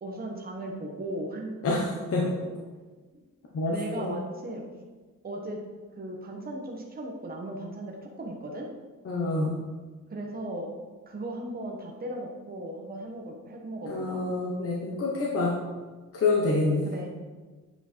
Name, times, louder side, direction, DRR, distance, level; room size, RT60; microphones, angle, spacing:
voice 1, 0.0-1.6 3.1-3.2 3.7-4.6 5.2-5.6 6.0-8.7 10.1-10.7 11.1-14.4 16.8-17.1, right 1 dB, 30° right, 0 dB, 1.3 m, -37 dB
voice 2, 1.6-2.2 3.5-4.1 9.0-9.6 13.9-15.5 16.2-16.9, left 3 dB, 45° left, -3 dB, 1.3 m, -27 dB
8.7 x 4.9 x 4.6 m, 1.3 s
cardioid pair, 125°, 31 cm